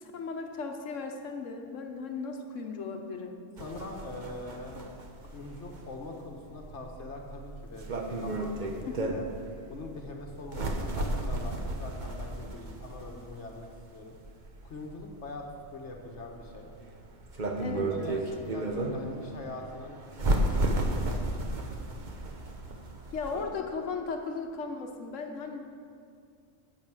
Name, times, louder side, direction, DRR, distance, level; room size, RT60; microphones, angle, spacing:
voice 1, 0.0-3.4 8.8-9.2 17.6-18.2 21.2-21.3 23.1-25.6, left 4 dB, 85° left, 4 dB, 1.4 m, -37 dB
voice 2, 3.6-4.8 5.3-9.3 9.7-14.2 14.6-15.5 15.7-16.7 17.7-20.0 20.3-21.7 23.3-23.7, left 2 dB, 65° left, 2 dB, 1.6 m, -43 dB
sound 1, 3.6-23.4, right 1 dB, 40° right, 1.0 m, -34 dB
10.5 x 7.1 x 7.5 m, 2.3 s
omnidirectional pair, 1.3 m